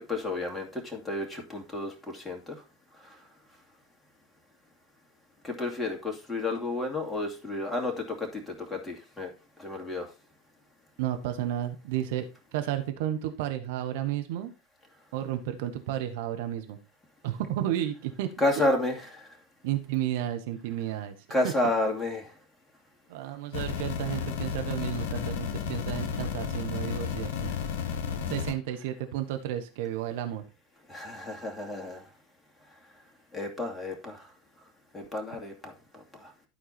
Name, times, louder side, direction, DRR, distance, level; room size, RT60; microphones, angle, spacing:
voice 1, 0.1-2.6 3.0-3.1 5.4-9.3 9.6-10.1 18.4-19.3 21.3-22.3 30.9-32.0 33.3-34.2 34.9-35.7 36.2-36.3, left 2 dB, 10° left, 0 dB, 2.4 m, -31 dB
voice 2, 11.0-12.3 12.5-14.5 15.1-16.8 17.2-18.6 19.6-21.1 21.4-21.5 23.1-27.5 28.3-30.4, right 12 dB, 60° right, 7 dB, 1.1 m, -32 dB
sound 1, 23.5-28.5, left 7 dB, 65° left, 0.9 m, -32 dB
12.0 x 4.6 x 4.3 m, 0.32 s
figure-of-eight pair, 80°, 0 cm